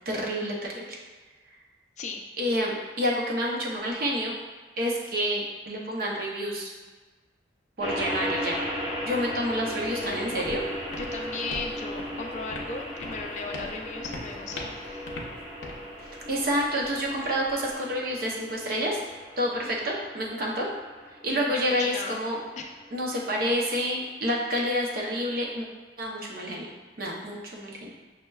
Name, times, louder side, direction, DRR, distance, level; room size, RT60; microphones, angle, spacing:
voice 1, 0.1-1.0 2.4-4.4 4.8-6.7 7.8-8.6 9.0-10.6 16.0-19.0 19.4-20.7 21.2-22.4 22.9-25.7 26.0-26.7 27.0-27.9, equal, 55° right, -2 dB, 0.6 m, -28 dB
sound 1, 7.8-23.1, equal, 25° right, 1.0 m, -37 dB
Walk footsteps, 9.8-17.7, left 2 dB, 85° left, 0.6 m, -43 dB
voice 2, 9.9-10.5 10.9-15.1 21.3-22.2 22.6-22.7, left 4 dB, 40° left, 2 dB, 0.4 m, -37 dB
6.2 x 2.1 x 2.3 m, 1.3 s
head